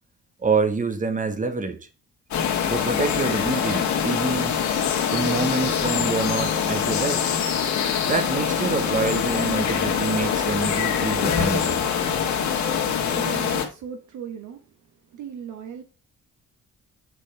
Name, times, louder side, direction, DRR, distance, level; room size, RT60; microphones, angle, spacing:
voice 1, 0.4-1.8 2.7-4.5 5.1-7.3 8.1-11.8, right 4 dB, 25° right, 1.3 m, -26 dB
sound 1, 2.3-13.7, left 7 dB, 70° left, 1.8 m, -24 dB
voice 2, 12.8-14.7 15.0-15.8, right 7 dB, 80° right, 1.3 m, -38 dB
8.3 x 6.2 x 3.3 m
cardioid pair, 90°, 30 cm